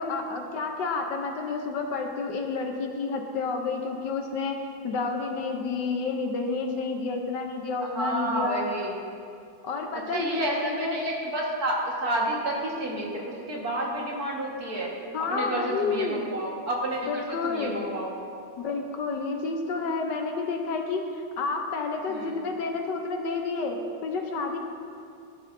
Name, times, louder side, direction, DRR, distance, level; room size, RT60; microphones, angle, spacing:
voice 1, 0.0-4.6 4.8-8.7 9.6-11.0 15.1-16.3 17.0-17.8 18.6-21.0 21.4-23.8 24.0-24.6, left 4 dB, 70° left, 3 dB, 1.4 m, -30 dB
voice 2, 7.8-9.0 9.9-14.9 15.2-18.1 22.1-22.4, right 1 dB, 55° right, -3 dB, 2.1 m, -30 dB
15.5 x 11.0 x 2.7 m, 2.5 s
omnidirectional pair, 2.1 m